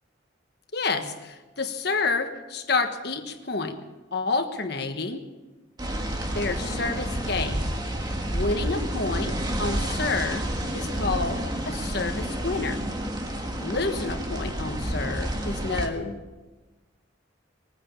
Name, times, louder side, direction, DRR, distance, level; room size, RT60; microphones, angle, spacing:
voice 1, 0.7-3.8 4.1-5.3 6.3-7.7 8.3-10.5 10.7-12.8 13.6-16.1, left 3 dB, 60° left, 6 dB, 1.4 m, -29 dB
sound 1, 5.8-15.9, right 1 dB, 20° right, 1.5 m, -29 dB
21.5 x 9.5 x 7.1 m, 1.2 s
head